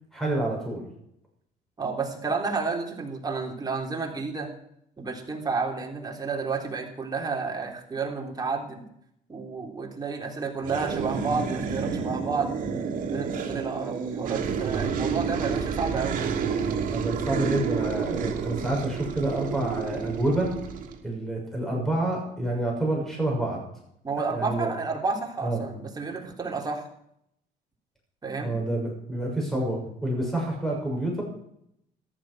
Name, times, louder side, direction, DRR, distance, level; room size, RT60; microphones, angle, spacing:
voice 1, 0.1-0.8 14.7-14.9 16.9-20.5 21.0-23.6 24.2-24.7 25.4-25.7 28.4-31.2, right 1 dB, ahead, -2 dB, 6.4 m, -28 dB
voice 2, 1.8-4.5 5.0-8.8 9.3-12.5 13.1-16.2 24.0-26.9 28.2-28.6, right 4 dB, 25° right, 0 dB, 3.6 m, -31 dB
sound 1, 10.6-21.0, right 6 dB, 55° right, 2.8 m, -30 dB
14.0 x 12.0 x 6.2 m, 0.73 s
cardioid pair, 110°, 17 cm